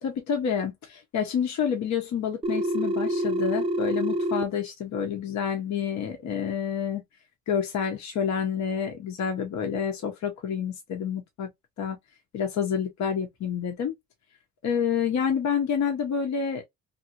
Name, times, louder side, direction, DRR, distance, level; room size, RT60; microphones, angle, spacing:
voice 1, 0.0-7.0 7.5-11.5 11.8-12.0 12.3-13.9 14.6-16.6, left 7 dB, 70° left, 0.9 m, -28 dB
Telephone, 2.4-4.4, right 1 dB, 20° right, 0.5 m, -26 dB
2.6 x 2.6 x 2.7 m
cardioid pair, 90°, 30 cm